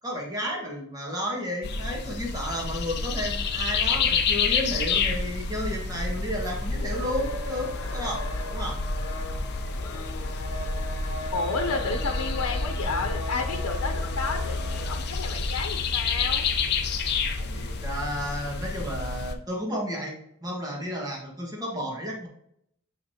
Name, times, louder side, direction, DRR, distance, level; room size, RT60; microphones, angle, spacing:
voice 1, 0.0-8.8 11.7-11.9 17.4-20.1 20.4-22.3, equal, 15° right, -2 dB, 1.6 m, -32 dB
sound 1, 1.6-19.3, left 4 dB, 50° left, 0.6 m, -29 dB
sound 2, 6.4-15.0, left 1 dB, 65° left, 1.0 m, -38 dB
voice 2, 11.3-16.4, left 4 dB, 90° left, 3 dB, 0.8 m, -31 dB
6.7 x 6.4 x 2.9 m, 0.74 s
head